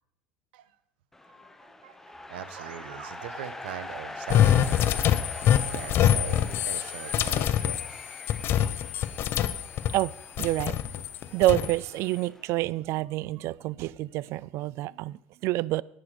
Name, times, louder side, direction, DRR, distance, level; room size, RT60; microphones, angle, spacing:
sound 1, 1.1-12.7, left 2 dB, 5° left, 0.8 m, -44 dB
voice 1, 1.8-7.8, right 11 dB, 85° right, 0.9 m, -41 dB
sound 2, 4.3-10.0 10.4-11.7, left 10 dB, 50° left, 0.7 m, -25 dB
voice 2, 9.9-10.8 11.3-15.8, right 17 dB, 60° right, 0.4 m, -28 dB
11.0 x 9.4 x 4.9 m
supercardioid pair, 105°, 5 cm